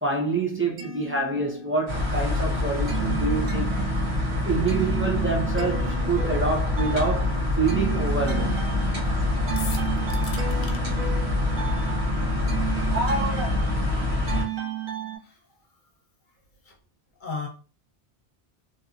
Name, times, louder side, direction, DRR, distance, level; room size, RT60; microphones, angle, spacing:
voice 1, 0.0-3.7 4.4-8.7, right 3 dB, 15° right, 0.5 m, -27 dB
sound 1, 0.5-2.0 2.3-15.2, right 9 dB, 55° right, 0.8 m, -35 dB
sound 2, 1.9-14.4, left 2 dB, 80° right, 1.3 m, -25 dB
sound 3, 9.6-10.8, left 6 dB, 80° left, 0.8 m, -38 dB
voice 2, 13.7-13.8 15.2-15.4 16.6-16.8 17.2-17.5, left 4 dB, 50° left, 0.9 m, -34 dB
2.9 x 2.7 x 2.4 m
omnidirectional pair, 1.1 m